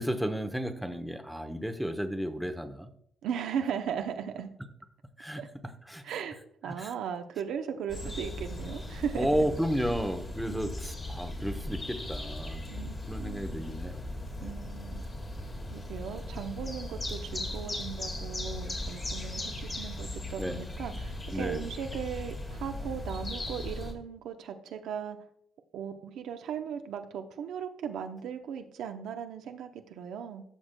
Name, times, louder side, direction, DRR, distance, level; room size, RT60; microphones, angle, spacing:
voice 1, 0.0-2.9 5.2-5.4 5.9-6.0 6.7-6.9 9.1-14.0 14.4-14.5 20.4-20.6 21.3-21.7, equal, ahead, 7 dB, 0.8 m, -33 dB
voice 2, 3.2-4.5 5.4-5.5 6.0-9.3 10.5-10.8 12.7-13.6 14.4-14.9 15.7-25.2 25.7-30.4, right 8 dB, 80° right, 6 dB, 0.8 m, -37 dB
sound 1, 7.9-23.9, left 1 dB, 30° left, 1.8 m, -38 dB
12.5 x 6.1 x 2.2 m, 0.67 s
cardioid pair, 90°, 0 cm